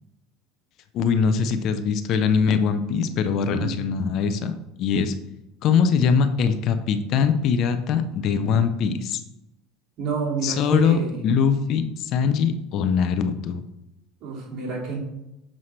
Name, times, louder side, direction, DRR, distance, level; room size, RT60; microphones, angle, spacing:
voice 1, 0.9-5.1 5.6-9.2 10.4-13.6, left 6 dB, 55° left, 9 dB, 0.7 m, -22 dB
voice 2, 3.5-3.8 10.0-11.2 14.2-15.0, right 4 dB, 50° right, -2 dB, 2.5 m, -29 dB
7.4 x 5.5 x 3.3 m, 0.87 s
supercardioid pair, 110°, 0 cm